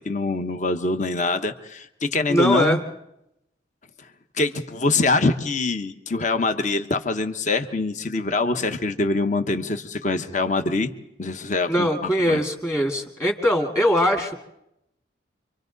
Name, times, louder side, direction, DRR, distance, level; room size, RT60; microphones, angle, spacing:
voice 1, 0.0-2.8 4.3-10.9 11.2-12.4, left 3 dB, 40° left, 8 dB, 1.0 m, -24 dB
voice 2, 2.3-2.8 11.7-14.3, equal, 15° left, 2 dB, 2.1 m, -21 dB
28.5 x 25.0 x 4.0 m, 0.82 s
head